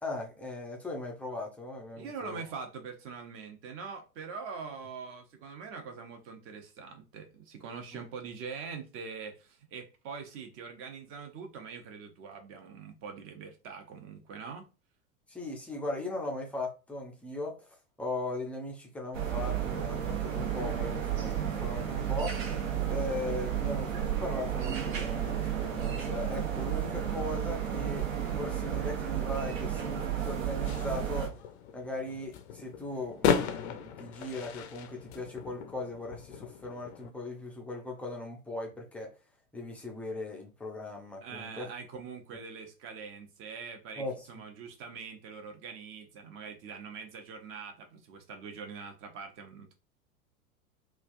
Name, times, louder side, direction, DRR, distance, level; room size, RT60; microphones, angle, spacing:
voice 1, 0.0-2.4 7.9-8.0 15.3-17.6 18.0-22.3 22.9-28.1 28.3-31.3 31.7-39.1 39.5-41.7 44.0-44.3, left 2 dB, 5° left, 0.4 m, -38 dB
voice 2, 2.0-14.7 41.2-49.7, right 5 dB, 30° right, 0.7 m, -43 dB
sound 1, 19.1-31.3, right 9 dB, 65° right, 1.1 m, -32 dB
sound 2, 30.7-37.1, left 8 dB, 50° left, 0.5 m, -35 dB
3.2 x 2.3 x 2.5 m
figure-of-eight pair, 95°, 44 cm